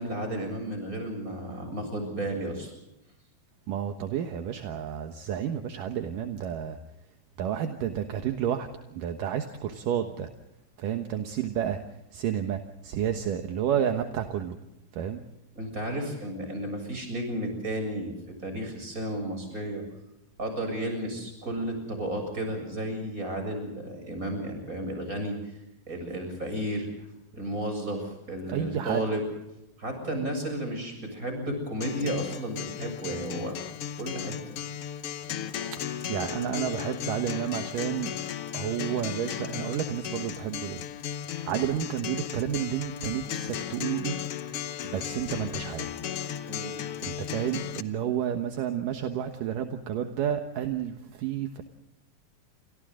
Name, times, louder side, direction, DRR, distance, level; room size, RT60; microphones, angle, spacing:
voice 1, 0.0-2.7 15.6-18.1 18.4-19.8 20.4-25.4 25.9-27.1 27.3-29.2 29.8-33.6 34.0-34.6 46.5-46.7, right 1 dB, 20° right, 5 dB, 7.7 m, -33 dB
voice 2, 3.7-6.8 7.4-10.3 10.8-11.8 12.1-14.6 14.9-15.2 28.5-29.0 35.7-38.1 38.5-40.8 41.4-44.2 44.9-45.9 47.0-51.6, right 9 dB, 70° right, 6 dB, 2.8 m, -31 dB
Acoustic guitar, 31.8-47.8, left 9 dB, 90° left, 1.3 m, -35 dB
29.5 x 27.0 x 3.8 m, 0.89 s
omnidirectional pair, 4.1 m